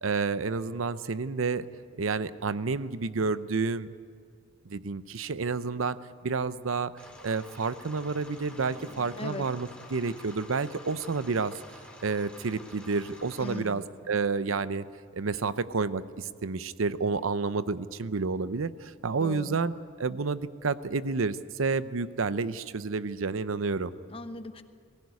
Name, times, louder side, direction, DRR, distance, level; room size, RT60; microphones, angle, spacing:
voice 1, 0.0-1.7 2.0-3.9 4.7-6.0 6.2-11.5 12.0-14.9 15.1-19.7 20.0-23.9, right 4 dB, 80° right, 14 dB, 0.7 m, -30 dB
sound 1, 4.4-9.8, equal, 35° right, 3.5 m, -56 dB
sound 2, 7.0-13.6, left 1 dB, 5° left, 2.9 m, -49 dB
voice 2, 13.4-13.9 19.2-19.6 24.1-24.6, left 2 dB, 30° left, 9 dB, 1.0 m, -38 dB
22.0 x 15.5 x 9.6 m, 2.1 s
head